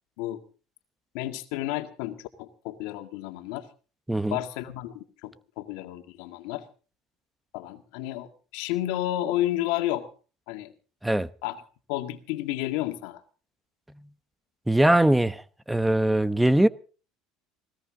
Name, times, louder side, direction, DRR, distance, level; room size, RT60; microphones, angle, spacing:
voice 1, 1.1-3.7 4.3-6.6 7.5-10.1 10.5-10.7 11.4-11.6 11.9-13.2, left 14 dB, 75° left, 1.9 m, -31 dB
voice 2, 4.1-4.4 11.0-11.3 14.7-15.4 15.7-16.7, right 1 dB, 5° right, 0.9 m, -21 dB
20.0 x 18.0 x 3.8 m
hypercardioid pair, 75°, 0 cm